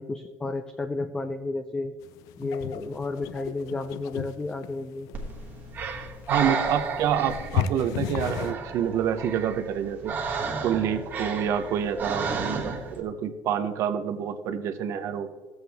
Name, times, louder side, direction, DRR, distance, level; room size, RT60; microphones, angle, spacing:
voice 1, 0.0-1.9 2.4-5.1, left 3 dB, 15° left, 8 dB, 0.4 m, -32 dB
sound 1, 2.0-8.6, left 10 dB, 80° left, 0.4 m, -34 dB
Breathing, 5.1-13.0, right 5 dB, 35° right, 1.3 m, -33 dB
voice 2, 6.3-10.2 10.6-15.3, right 8 dB, 55° right, 10 dB, 0.7 m, -27 dB
14.0 x 8.0 x 3.5 m, 1.4 s
cardioid pair, 155°, 6 cm